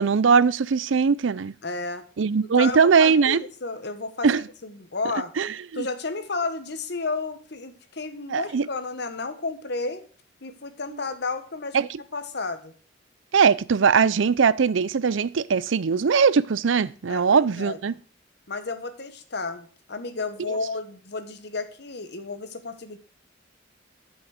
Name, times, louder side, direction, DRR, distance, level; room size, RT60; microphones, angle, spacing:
voice 1, 0.0-1.5 2.2-3.4 4.2-4.4 5.4-5.9 8.3-8.7 11.7-11.9 13.3-17.9, right 5 dB, 80° right, 0.5 m, -20 dB
voice 2, 1.6-2.0 2.4-5.3 5.7-10.0 10.4-11.8 12.1-12.7 17.1-17.8 18.5-23.0, left 3 dB, 60° left, 1.3 m, -32 dB
11.5 x 6.3 x 6.5 m
head